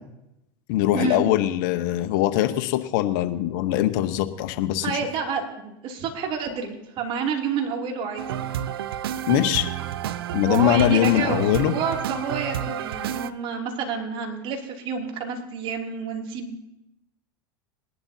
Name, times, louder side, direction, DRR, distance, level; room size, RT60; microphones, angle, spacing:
voice 1, 0.7-5.0 9.3-9.7 10.3-11.7, left 13 dB, 60° left, 9 dB, 1.0 m, -22 dB
voice 2, 4.8-8.4 10.4-16.6, right 5 dB, 45° right, 1 dB, 2.8 m, -29 dB
sound 1, 8.2-13.3, right 10 dB, 80° right, 0.5 m, -29 dB
21.5 x 11.5 x 2.8 m, 0.88 s
hypercardioid pair, 95°, 12 cm